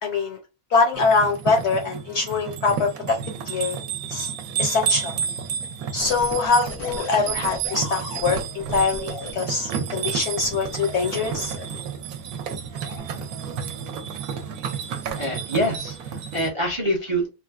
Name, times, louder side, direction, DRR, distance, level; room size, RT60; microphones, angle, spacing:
voice 1, 0.0-0.4 0.7-3.2 3.4-3.8 4.1-4.3 4.6-5.2 5.9-11.5, left 4 dB, 65° left, 0.7 m, -23 dB
sound 1, 0.9-16.5, right 7 dB, 80° right, 1.0 m, -31 dB
sound 2, 6.0-9.3 10.4-12.0 12.7-13.0, left 5 dB, 85° left, 1.2 m, -37 dB
voice 2, 15.2-17.3, equal, 35° right, 0.4 m, -25 dB
3.3 x 2.4 x 2.3 m
omnidirectional pair, 1.6 m